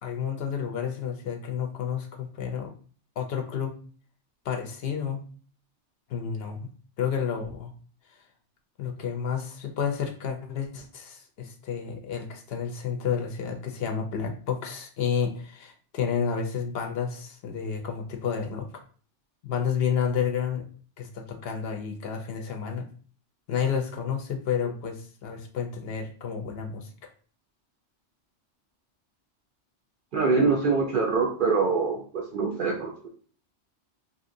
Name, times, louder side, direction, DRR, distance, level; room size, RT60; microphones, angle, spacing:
voice 1, 0.0-2.7 3.2-3.7 4.4-5.2 6.1-6.7 7.0-7.7 8.8-18.7 19.4-20.6 21.0-22.9 23.5-27.1, left 7 dB, 65° left, 4 dB, 0.7 m, -30 dB
voice 2, 30.1-33.1, right 4 dB, 60° right, 0 dB, 0.6 m, -24 dB
2.8 x 2.7 x 2.6 m, 0.42 s
omnidirectional pair, 1.2 m